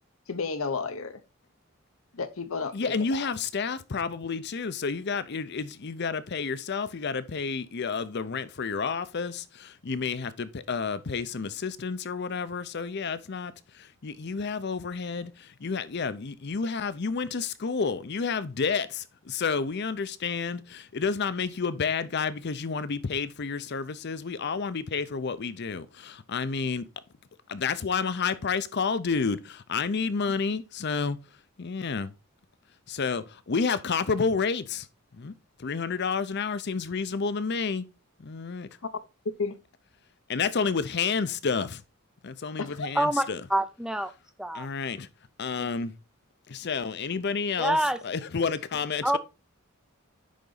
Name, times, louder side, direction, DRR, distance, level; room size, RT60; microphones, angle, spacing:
voice 1, 0.3-1.2 2.1-3.2 39.4-39.6 42.6-42.9, left 4 dB, 80° left, 0.9 m, -32 dB
voice 2, 2.7-26.9 27.5-31.2 31.6-32.1 32.9-34.9 35.1-35.3 35.6-37.8 38.2-38.7 40.3-41.8 42.2-43.4 44.5-45.1 45.4-45.9 46.5-47.8 48.0-49.2, left 5 dB, 55° left, 0.6 m, -30 dB
voice 3, 42.9-44.1 44.4-44.7 47.6-48.0 49.0-49.2, right 1 dB, 5° right, 0.4 m, -26 dB
10.0 x 4.0 x 3.9 m
head